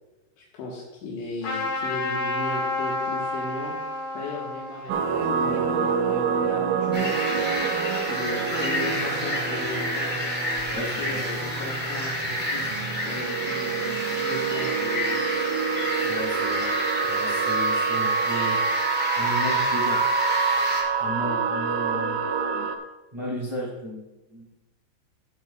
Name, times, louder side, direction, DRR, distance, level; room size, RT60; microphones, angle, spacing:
voice 1, 0.4-3.7 4.1-7.5 8.1-10.1 10.7-15.1, left 2 dB, 70° left, -4 dB, 3.5 m, -36 dB
Trumpet, 1.4-6.5, left 2 dB, 50° left, 2.1 m, -31 dB
sound 1, 4.9-22.8, right 6 dB, 80° right, 2.9 m, -27 dB
sound 2, 6.9-20.8, left 1 dB, 25° left, 0.4 m, -30 dB
voice 2, 10.7-11.2 16.0-16.7 17.0-18.8 19.1-20.0 21.0-22.2 23.1-24.0 24.3-24.4, equal, 25° right, -5 dB, 0.7 m, -33 dB
16.5 x 7.2 x 2.4 m, 1.0 s
omnidirectional pair, 5.7 m